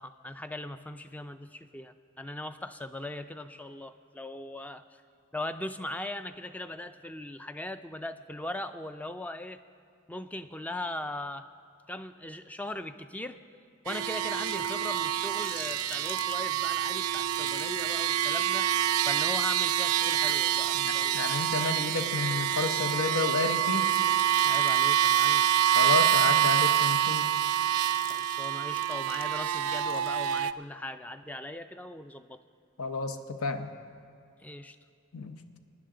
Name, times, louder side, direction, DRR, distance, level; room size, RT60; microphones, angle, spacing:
voice 1, 0.0-5.0 5.3-9.6 10.1-11.5 11.9-13.4 13.8-18.7 19.0-21.3 24.4-25.5 28.1-32.4 34.4-34.8, left 1 dB, 5° left, 10 dB, 0.3 m, -39 dB
sound 1, 13.9-30.5, right 11 dB, 85° right, 0.3 m, -26 dB
sound 2, 14.4-16.3 17.0-18.4 19.1-22.1 22.3-23.3 23.7-24.8 25.4-29.6 29.9-30.4, left 5 dB, 40° left, 0.8 m, -46 dB
voice 2, 20.7-23.9 25.7-27.4 32.8-33.7 35.1-35.4, left 4 dB, 80° left, 8 dB, 0.8 m, -31 dB
23.0 x 9.9 x 3.8 m, 2.4 s
head